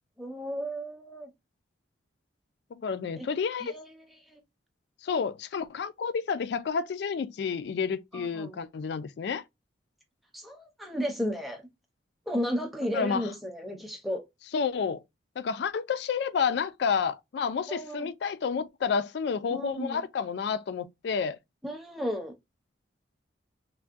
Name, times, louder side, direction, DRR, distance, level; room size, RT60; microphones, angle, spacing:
voice 1, 0.2-1.3 3.2-3.3 3.6-3.9 4.3-4.4 8.1-8.6 10.3-11.6 12.3-14.2 17.7-18.1 19.5-20.0 21.6-22.3, equal, ahead, 0.6 m, -33 dB
voice 2, 2.7-3.7 5.0-9.4 12.9-13.3 14.5-15.0 15.4-21.4, left 6 dB, 60° left, 0.3 m, -30 dB
3.4 x 2.2 x 2.5 m
head